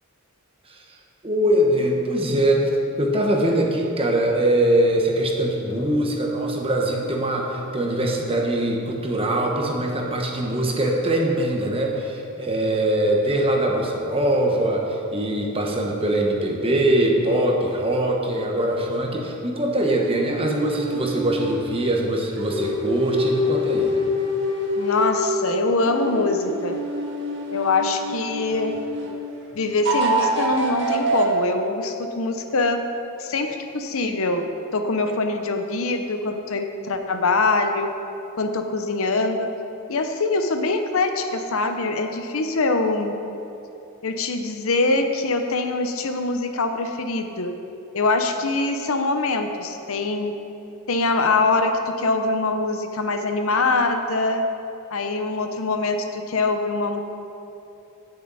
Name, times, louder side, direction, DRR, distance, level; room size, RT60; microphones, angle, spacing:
voice 1, 1.2-2.7 3.0-23.9, right 1 dB, 25° right, 0 dB, 1.2 m, -22 dB
sound 1, 20.2-21.6 22.4-25.3 25.8-29.2 29.8-31.3, equal, 55° right, 1.6 m, -26 dB
voice 2, 24.7-26.8 27.5-28.7 29.5-32.8 33.2-34.5 34.7-37.9 38.4-39.5 39.9-43.1 44.0-47.5 47.9-50.3 50.9-54.4 54.9-57.0, left 3 dB, 65° left, 6 dB, 0.8 m, -23 dB
16.5 x 6.7 x 4.1 m, 2.9 s
head